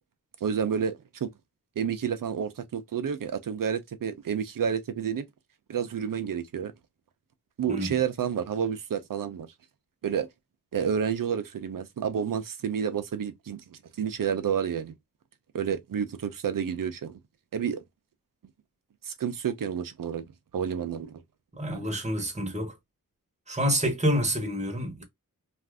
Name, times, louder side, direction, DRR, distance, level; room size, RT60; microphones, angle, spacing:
voice 1, 0.4-1.3 1.8-5.3 5.7-6.7 7.6-9.5 10.0-10.3 10.7-14.9 15.5-17.2 17.5-17.8 19.0-20.3 20.5-21.2 21.7-21.9, right 7 dB, 70° right, 0.6 m, -30 dB
voice 2, 21.5-22.7 23.5-25.0, equal, 20° right, 1.0 m, -28 dB
2.5 x 2.4 x 3.3 m
wide cardioid pair, 110°, 35 cm